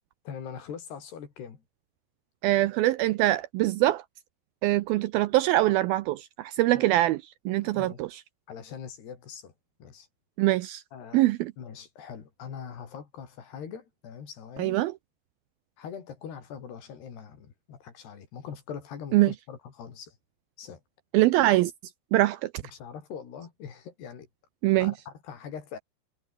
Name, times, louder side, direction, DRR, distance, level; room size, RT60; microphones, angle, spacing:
voice 1, 0.3-1.6 6.7-6.9 7.6-8.1 8.5-9.5 9.8-10.1 10.9-11.2 11.6-14.8 15.8-20.2 20.6-20.8 22.7-24.3 24.8-25.8, left 7 dB, 70° left, 5.7 m, -42 dB
voice 2, 2.4-4.0 4.6-7.2 7.5-8.2 10.4-10.8 11.1-11.5 14.6-14.9 19.1-19.3 21.1-21.7 22.1-22.5 24.6-24.9, right 16 dB, 80° right, 2.2 m, -23 dB
omnidirectional pair, 4.9 m